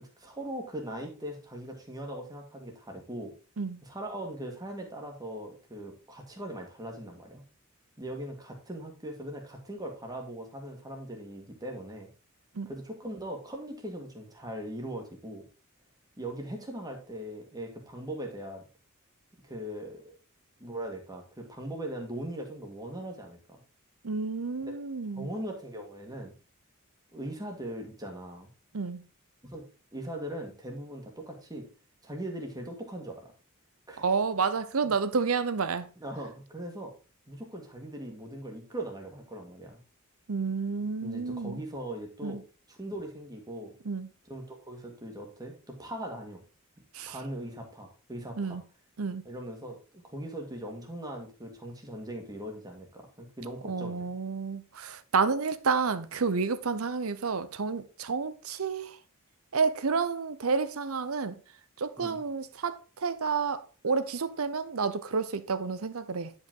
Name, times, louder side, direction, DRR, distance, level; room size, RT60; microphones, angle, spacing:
voice 1, 0.2-3.3 3.8-7.4 8.0-12.1 12.7-15.4 16.2-18.6 19.4-20.2 20.6-23.6 25.2-26.3 27.1-28.5 29.4-29.7 29.9-31.7 32.0-33.3 33.9-34.1 36.0-36.9 37.3-39.8 41.0-42.4 42.7-43.7 44.3-46.4 47.1-48.6 49.3-54.1 62.0-62.2, right 1 dB, 20° right, 1.9 m, -40 dB
voice 2, 24.0-25.3 28.7-29.0 34.0-35.9 40.3-41.6 42.2-42.4 43.8-44.1 46.9-47.2 48.4-48.6 49.0-49.2 53.6-59.0 59.5-61.4 61.8-66.3, right 5 dB, 90° right, 0.8 m, -30 dB
9.8 x 5.2 x 3.8 m
head